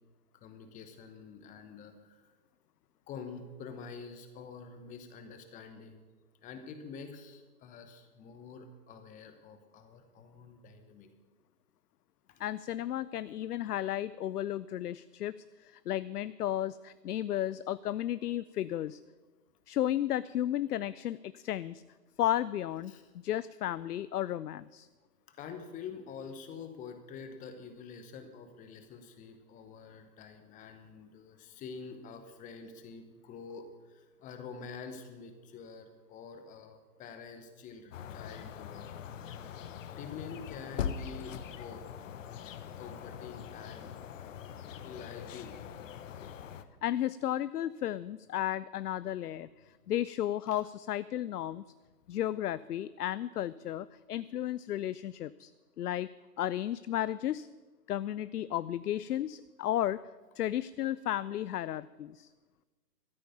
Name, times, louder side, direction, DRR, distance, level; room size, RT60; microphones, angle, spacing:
voice 1, 0.3-2.3 3.1-6.0 6.4-11.1 12.3-12.4 22.9-23.0 25.3-38.9 40.0-41.8 42.8-43.9 44.8-45.6 50.5-50.6, left 5 dB, 15° left, 8 dB, 1.0 m, -47 dB
voice 2, 12.4-15.3 15.6-19.0 19.7-21.8 22.2-22.9 23.2-24.9 46.8-51.6 52.1-55.5 55.8-56.1 56.4-57.5 57.9-60.0 60.4-62.3, left 12 dB, 70° left, 17 dB, 0.5 m, -33 dB
sound 1, 37.9-46.6, left 8 dB, 55° left, 1.0 m, -42 dB
13.5 x 8.9 x 7.0 m, 1.3 s
figure-of-eight pair, 125°, 48 cm